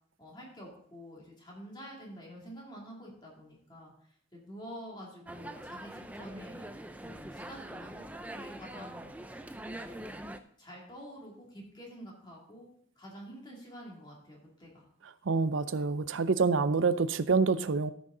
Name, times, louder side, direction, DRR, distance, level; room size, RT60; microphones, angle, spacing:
voice 1, 0.2-6.7 7.0-8.1 8.3-9.4 9.7-10.3 10.6-12.7 13.0-14.9, equal, 20° left, -2 dB, 2.5 m, -48 dB
sound 1, 5.3-10.4, right 1 dB, 5° right, 0.4 m, -43 dB
voice 2, 15.2-17.9, right 4 dB, 75° right, 14 dB, 0.5 m, -27 dB
14.0 x 6.3 x 3.8 m, 0.63 s
head